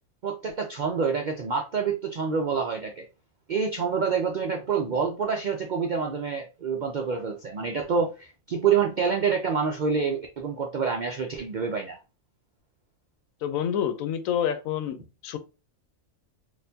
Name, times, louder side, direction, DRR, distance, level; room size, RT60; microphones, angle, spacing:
voice 1, 0.2-3.1 3.5-12.0, right 6 dB, 65° right, 0.4 m, -27 dB
voice 2, 13.4-15.4, left 9 dB, 90° left, 1.0 m, -28 dB
4.2 x 2.5 x 2.6 m
omnidirectional pair, 1.4 m